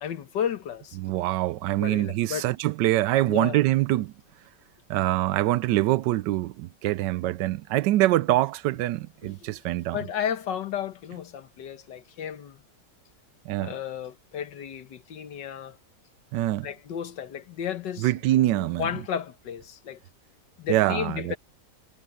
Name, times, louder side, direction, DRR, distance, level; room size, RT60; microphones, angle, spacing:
voice 1, 0.0-1.0 1.8-2.5 3.3-3.6 9.2-9.5 9.9-12.6 13.6-15.8 16.6-18.1 18.5-20.0 20.6-21.4, left 8 dB, 80° left, 1.8 m, -33 dB
voice 2, 1.0-4.1 4.9-10.0 13.5-13.8 16.3-16.7 18.0-18.9 20.7-21.4, right 15 dB, 80° right, 1.2 m, -24 dB
omnidirectional pair, 1.9 m